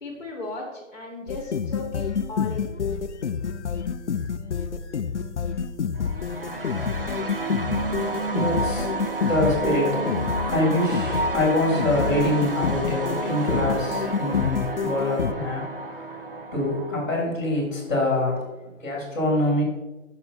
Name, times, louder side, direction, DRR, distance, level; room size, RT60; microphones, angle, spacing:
voice 1, 0.0-2.7, left 3 dB, 45° left, -2 dB, 1.7 m, -36 dB
sound 1, 1.3-15.3, left 6 dB, 60° left, 0.5 m, -28 dB
sound 2, 6.0-17.0, right 3 dB, 45° right, 0.5 m, -30 dB
voice 2, 6.3-18.5 18.8-19.6, left 1 dB, 10° left, -12 dB, 2.2 m, -26 dB
6.8 x 5.8 x 4.2 m, 1.1 s
hypercardioid pair, 180°, 39 cm